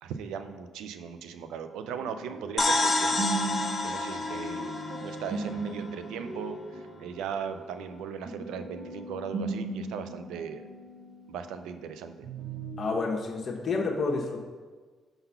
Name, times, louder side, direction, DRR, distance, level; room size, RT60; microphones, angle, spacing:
voice 1, 0.0-3.2 3.8-10.6 11.3-12.2, right 7 dB, 90° right, 9 dB, 0.4 m, -38 dB
sound 1, 1.8-11.9 12.2-13.0, right 2 dB, 70° right, 0.8 m, -37 dB
sound 2, 2.6-6.2, left 2 dB, 25° left, 0.8 m, -29 dB
voice 2, 12.8-14.4, left 3 dB, 50° left, 1 dB, 1.0 m, -29 dB
5.5 x 3.9 x 5.6 m, 1.4 s
cardioid pair, 90°, 0 cm